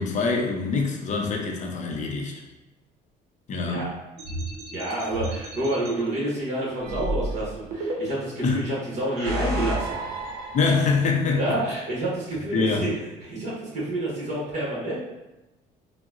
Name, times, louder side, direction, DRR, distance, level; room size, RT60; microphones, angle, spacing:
voice 1, 0.0-2.3 3.5-3.9 8.4-8.6 10.5-11.4 12.5-12.9, left 4 dB, 45° left, 0 dB, 0.6 m, -24 dB
sound 1, 4.2-5.9 6.8-8.4 9.0-11.2, right 1 dB, 70° right, 0.7 m, -32 dB
voice 2, 4.7-10.0 11.4-12.9 13.2-15.0, right 1 dB, 45° right, -5 dB, 1.0 m, -28 dB
3.7 x 2.1 x 2.4 m, 1.0 s
cardioid pair, 110°, 17 cm